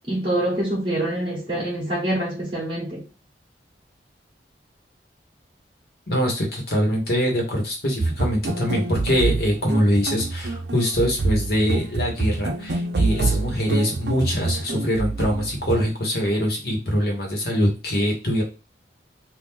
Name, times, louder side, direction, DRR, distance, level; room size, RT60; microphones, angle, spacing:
voice 1, 0.1-3.1, right 1 dB, 30° right, 1.2 m, -25 dB
voice 2, 6.1-18.4, equal, 60° left, 1.4 m, -23 dB
sound 1, 8.0-15.9, right 3 dB, 60° right, 0.5 m, -26 dB
3.0 x 2.6 x 3.7 m
head